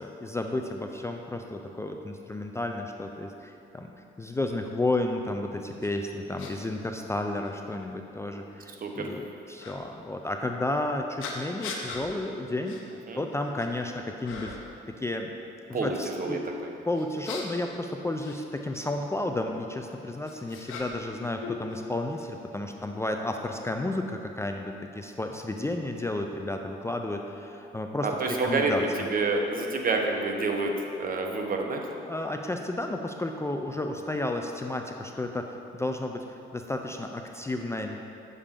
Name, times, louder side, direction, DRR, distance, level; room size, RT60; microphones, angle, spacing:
voice 1, 0.0-3.9 4.2-12.8 13.2-14.6 14.9-15.3 15.7-16.5 16.9-29.1 32.0-38.0, left 2 dB, 15° left, 3 dB, 0.4 m, -32 dB
sound 1, 5.8-5.9 6.4-6.5 7.4-7.5 9.6-9.8 11.2-12.1 12.7-12.8 13.3-13.8 14.2-14.7 16.9-18.9 19.9-21.1 21.4-22.3, left 4 dB, 90° left, 0.9 m, -40 dB
voice 2, 15.7-16.7 28.0-31.8, right 3 dB, 45° right, 2 dB, 1.0 m, -28 dB
8.3 x 6.7 x 3.7 m, 2.7 s
cardioid pair, 90°, 20 cm